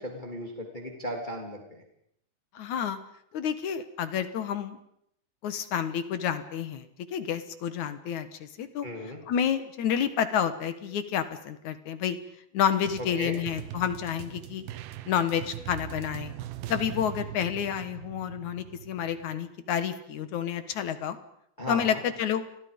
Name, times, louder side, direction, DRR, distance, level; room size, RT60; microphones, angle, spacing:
voice 1, 0.0-1.8 8.8-9.2 13.0-13.4 21.6-22.0, equal, 15° left, 2 dB, 2.9 m, -36 dB
voice 2, 2.6-3.0 3.3-4.8 5.4-6.9 7.1-8.9 9.3-12.2 12.5-14.6 15.1-16.3 16.7-21.2 21.7-22.4, left 8 dB, 65° left, 11 dB, 2.6 m, -29 dB
sound 1, 12.9-19.4, right 12 dB, 90° right, 2.9 m, -41 dB
29.5 x 22.5 x 5.3 m, 0.73 s
omnidirectional pair, 4.0 m